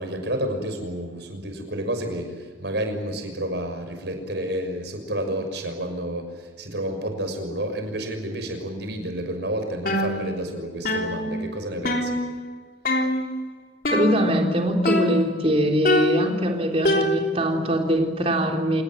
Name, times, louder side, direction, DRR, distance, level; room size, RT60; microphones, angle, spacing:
voice 1, 0.0-12.2, right 1 dB, 65° right, 6 dB, 6.3 m, -30 dB
sound 1, 9.9-10.6 10.9-12.5 12.9-13.4 13.9-14.5 14.9-15.5 15.9-17.6, left 1 dB, 50° left, 3.4 m, -25 dB
voice 2, 13.9-18.8, equal, 30° right, 2 dB, 3.7 m, -22 dB
28.0 x 19.0 x 9.2 m, 1.3 s
head